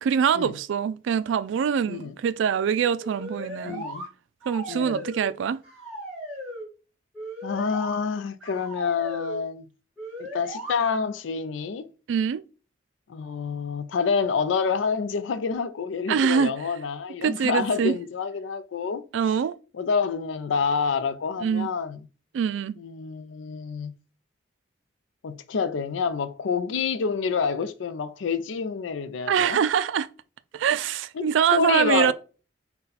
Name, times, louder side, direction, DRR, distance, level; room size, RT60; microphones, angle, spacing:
voice 1, 0.0-3.8 4.5-5.6 12.1-12.4 16.1-16.5 17.2-18.0 19.1-19.6 21.4-21.7 22.3-22.8 29.3-30.1 30.5-32.1, right 7 dB, 80° right, 0.3 m, -24 dB
sound 1, 3.0-4.1 4.4-5.4 5.6-6.7 7.1-8.0 8.4-9.4 10.0-10.7, equal, 5° right, 1.2 m, -37 dB
voice 2, 3.6-4.1 4.7-5.1 7.4-9.7 10.2-11.9 13.1-19.1 19.7-22.0 22.8-23.9 25.2-29.6 31.1-32.1, left 5 dB, 90° left, 0.4 m, -28 dB
3.9 x 2.2 x 4.0 m
head